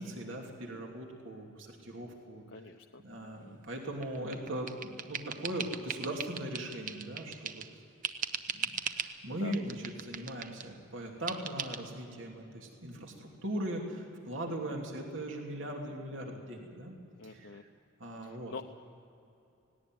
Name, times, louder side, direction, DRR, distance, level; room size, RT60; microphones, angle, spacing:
voice 1, 0.0-2.4 3.0-7.6 8.5-16.9 17.2-17.6 18.0-18.5, right 1 dB, 75° right, 1 dB, 2.9 m, -39 dB
voice 2, 2.5-3.0 3.4-3.6 9.3-9.5 14.5-14.8 17.2-17.6 18.2-18.6, left 4 dB, 70° left, 3 dB, 0.8 m, -46 dB
sound 1, 4.0-7.7 8.0-9.2 9.5-10.7 11.3-11.8, right 7 dB, 40° right, 0.8 m, -39 dB
18.5 x 18.0 x 9.2 m, 2.7 s
head